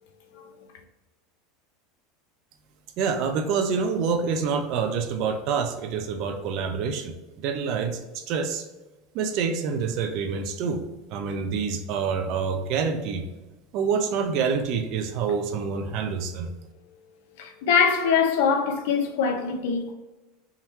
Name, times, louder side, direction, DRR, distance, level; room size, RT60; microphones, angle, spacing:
voice 1, 3.0-7.1 7.4-8.6 9.1-10.8 11.1-13.3 13.7-16.5, right 5 dB, 50° right, 0.6 m, -27 dB
voice 2, 17.4-19.9, left 6 dB, 75° left, 0.7 m, -23 dB
3.6 x 3.1 x 4.3 m
supercardioid pair, 145°, 0 cm